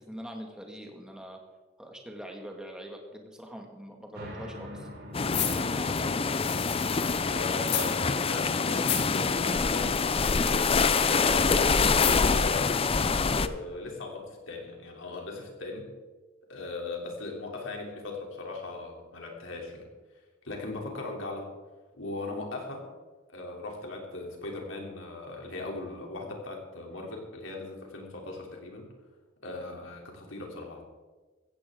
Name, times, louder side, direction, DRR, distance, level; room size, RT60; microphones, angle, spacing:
voice 1, 0.0-1.4 1.8-4.9 5.5-6.4, equal, 5° right, 1 dB, 2.0 m, -43 dB
sound 1, 4.1-15.2, equal, 55° right, 5.1 m, -49 dB
sound 2, 5.1-13.5, left 4 dB, 30° left, 0.5 m, -25 dB
sound 3, 5.3-7.2 7.6-8.0 8.2-8.3 8.7-9.2 9.9-11.1 11.9-12.4 12.9-13.0, left 9 dB, 60° left, 2.4 m, -34 dB
voice 2, 7.3-10.4 11.0-12.8 13.3-15.9 16.5-19.9 20.4-21.5 21.9-22.8 23.3-28.9 29.4-30.8, left 3 dB, 85° left, 0 dB, 3.4 m, -39 dB
16.0 x 15.0 x 3.8 m, 1.3 s
head